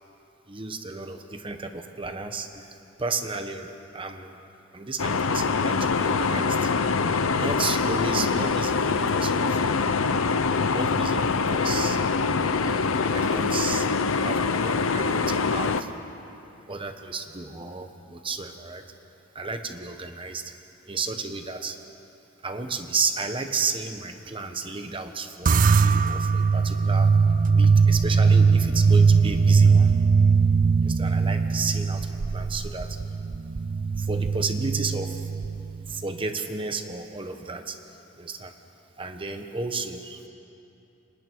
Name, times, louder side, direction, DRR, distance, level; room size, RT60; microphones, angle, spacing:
voice 1, 0.5-4.4 4.7-6.7 7.4-10.0 10.7-12.0 12.6-15.9 16.7-18.8 19.3-20.5 20.9-21.8 22.4-27.1 27.5-29.9 30.8-33.0 34.0-35.3 35.9-37.8 38.2-38.5 39.0-40.2, right 4 dB, 25° right, 6 dB, 1.2 m, -33 dB
sound 1, 5.0-15.8, left 4 dB, 90° left, 0.8 m, -24 dB
sound 2, 25.5-36.1, right 5 dB, 40° right, 0.4 m, -20 dB
29.0 x 24.5 x 4.7 m, 2.9 s
head